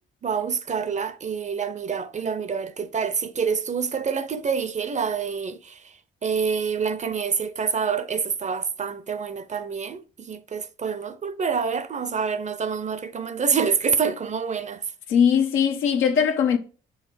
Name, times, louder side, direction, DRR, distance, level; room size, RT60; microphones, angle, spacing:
voice 1, 0.2-5.9 6.2-14.8, right 6 dB, 35° right, 0.6 m, -27 dB
voice 2, 15.1-16.6, left 7 dB, 85° left, 0.9 m, -20 dB
6.3 x 3.6 x 5.1 m
cardioid pair, 90°, 20 cm